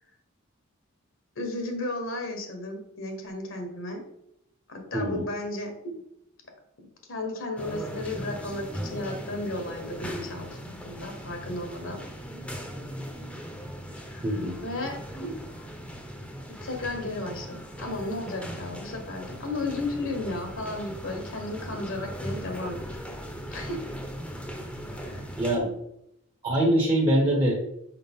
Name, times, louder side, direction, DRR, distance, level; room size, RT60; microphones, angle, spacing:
voice 1, 1.3-4.0 4.7-6.0 7.1-12.0 14.0-14.3 14.6-15.4 16.6-22.8 23.5-23.8 24.9-25.3, left 2 dB, 65° left, 4 dB, 1.4 m, -34 dB
sound 1, 7.6-25.6, equal, 5° left, 0.8 m, -39 dB
voice 2, 14.2-14.5 25.4-25.7 26.4-27.5, right 1 dB, 25° right, -2 dB, 0.9 m, -23 dB
5.8 x 4.9 x 3.6 m, 0.78 s
head